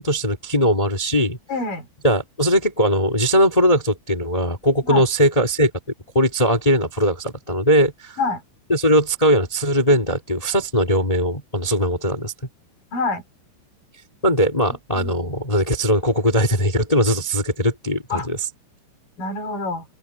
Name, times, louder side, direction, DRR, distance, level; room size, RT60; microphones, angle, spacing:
voice 1, 0.0-1.4 2.0-5.7 6.1-8.2 8.7-12.3 14.2-18.4, equal, 65° left, 0.3 m, -19 dB
voice 2, 1.5-1.9 4.9-5.1 8.2-8.4 12.9-13.2 14.9-15.1 18.1-18.3 19.2-19.9, left 3 dB, 45° left, 5.5 m, -26 dB
open air
omnidirectional pair, 5.5 m